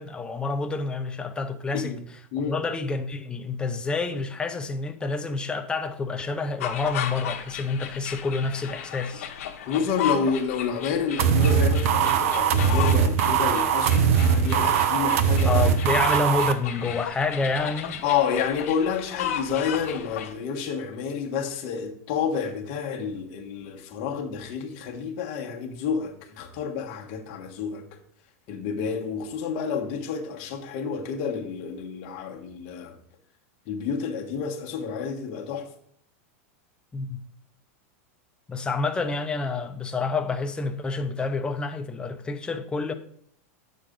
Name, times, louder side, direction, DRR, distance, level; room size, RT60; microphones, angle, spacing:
voice 1, 0.0-1.9 2.5-9.3 15.5-18.0 36.9-37.2 38.5-42.9, left 3 dB, 10° left, 0.7 m, -28 dB
voice 2, 1.7-2.0 2.3-2.6 9.6-15.7 18.0-27.8 28.5-33.0 33.7-35.7, left 6 dB, 45° left, 1.4 m, -29 dB
sound 1, 6.6-20.3, left 9 dB, 80° left, 1.0 m, -35 dB
sound 2, 11.2-16.5, right 7 dB, 70° right, 0.8 m, -21 dB
7.9 x 6.6 x 3.8 m
supercardioid pair, 145°, 8 cm